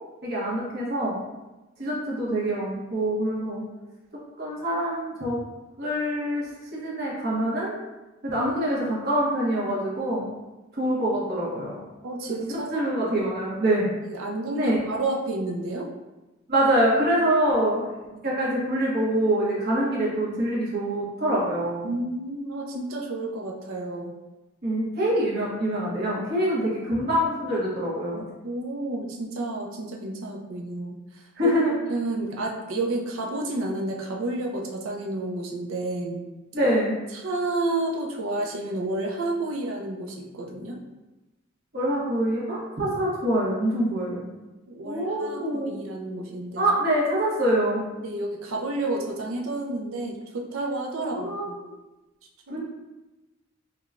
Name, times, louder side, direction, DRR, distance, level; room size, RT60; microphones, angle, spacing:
voice 1, 0.2-1.2 1.8-3.6 4.4-5.5 5.8-6.5 6.7-7.8 8.2-10.3 10.7-11.8 12.5-13.9 14.6-14.8 16.5-18.0 18.2-21.9 24.6-28.2 31.4-31.8 36.5-37.0 41.7-44.2 44.8-45.7 46.6-47.8 51.1-51.6 52.5-52.6, right 1 dB, 55° right, -5 dB, 1.1 m, -25 dB
voice 2, 12.0-12.9 13.2-13.3 14.0-15.9 18.1-18.2 21.8-24.1 28.4-36.3 37.1-40.8 44.7-46.6 48.0-51.6 52.5-52.6, right 2 dB, 85° right, 1 dB, 0.6 m, -30 dB
4.7 x 2.2 x 2.5 m, 1.1 s
head